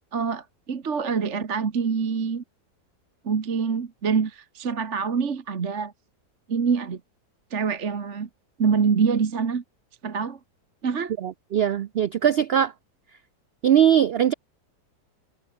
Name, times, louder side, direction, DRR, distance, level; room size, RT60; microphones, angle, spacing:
voice 1, 0.1-2.4 3.2-5.9 6.5-7.0 7.5-8.3 8.6-9.6 10.0-10.4 10.8-11.1, right 6 dB, 45° right, 1.7 m, -25 dB
voice 2, 11.2-12.7 13.6-14.3, right 9 dB, 90° right, 0.5 m, -20 dB
omnidirectional pair, 1.7 m